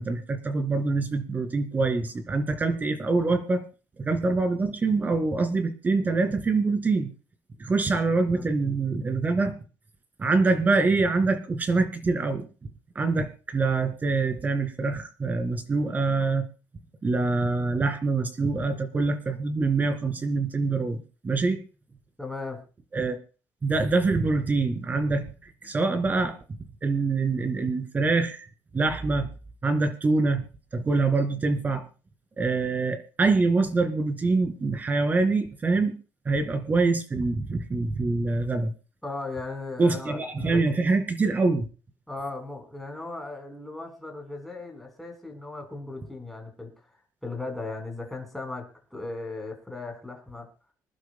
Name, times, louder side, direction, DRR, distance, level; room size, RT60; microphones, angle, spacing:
voice 1, 0.0-3.6 4.0-7.1 7.6-9.5 10.2-12.5 13.0-16.5 17.0-21.6 22.9-23.2 23.6-25.3 25.6-26.4 26.8-28.5 28.7-29.3 29.6-30.5 30.7-31.8 32.4-35.9 36.3-38.7 39.8-41.7, right 3 dB, 25° right, 8 dB, 2.3 m, -25 dB
voice 2, 22.2-22.6 25.6-25.7 39.0-40.8 42.1-50.5, left 3 dB, 5° left, 2 dB, 4.2 m, -37 dB
26.5 x 11.5 x 2.2 m, 0.35 s
cardioid pair, 150°, 7 cm